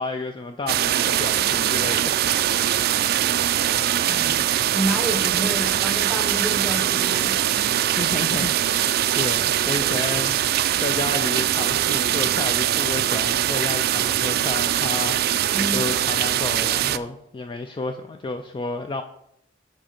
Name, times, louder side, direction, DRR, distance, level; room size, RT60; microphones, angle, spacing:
voice 1, 0.0-2.9 8.0-19.0, left 3 dB, 25° left, 6 dB, 0.3 m, -31 dB
sound 1, 0.7-17.0, right 11 dB, 55° right, 0.3 m, -22 dB
voice 2, 4.0-7.4 15.5-15.9, right 1 dB, 5° left, 3 dB, 1.1 m, -29 dB
6.2 x 4.3 x 6.5 m, 0.76 s
head